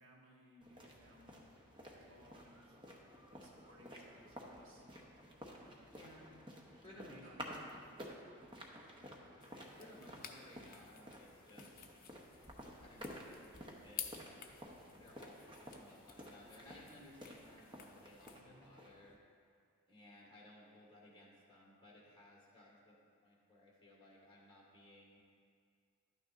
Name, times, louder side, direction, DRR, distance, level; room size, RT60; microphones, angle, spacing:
voice 1, 0.0-1.5 1.9-2.8 3.3-4.8 5.4-5.9 6.3-6.5 6.8-8.4 8.9-9.0 18.3-18.7, equal, 65° right, -2 dB, 1.3 m, -63 dB
sound 1, 0.6-19.2, equal, 20° right, 0.8 m, -53 dB
voice 2, 5.9-6.4 6.8-7.6 9.8-11.8 12.8-19.2 19.9-25.2, left 1 dB, 20° left, -5 dB, 1.7 m, -59 dB
sound 2, 9.4-18.4, left 8 dB, 40° left, 0.6 m, -53 dB
12.0 x 9.2 x 2.5 m, 2.2 s
head